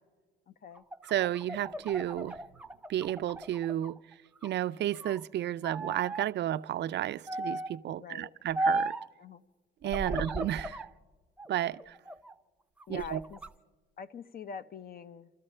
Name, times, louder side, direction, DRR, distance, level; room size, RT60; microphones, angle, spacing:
voice 1, 0.5-0.8 8.0-8.3 9.2-9.4 10.0-10.3 12.9-13.4 14.0-15.3, left 6 dB, 50° left, 0.7 m, -44 dB
sound 1, 0.8-4.0 4.4-5.2 5.6-6.3 7.3-7.8 8.6-9.1 9.8-10.9 11.4-12.3 12.8-13.5, right 2 dB, 5° right, 0.6 m, -36 dB
voice 2, 1.1-2.4 2.9-4.0 4.4-8.9 9.8-10.9 11.5-12.0 12.9-13.2, right 12 dB, 60° right, 0.4 m, -32 dB
29.5 x 13.0 x 3.3 m
cardioid pair, 90°, 20 cm